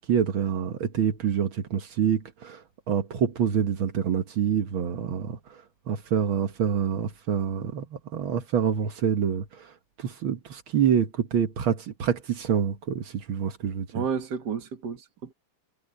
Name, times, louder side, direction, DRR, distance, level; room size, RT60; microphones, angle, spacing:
voice 1, 0.1-9.7 10.0-14.0, right 8 dB, 80° right, 2.2 m, -27 dB
voice 2, 13.9-15.3, right 6 dB, 55° right, 2.3 m, -31 dB
omnidirectional pair, 2.2 m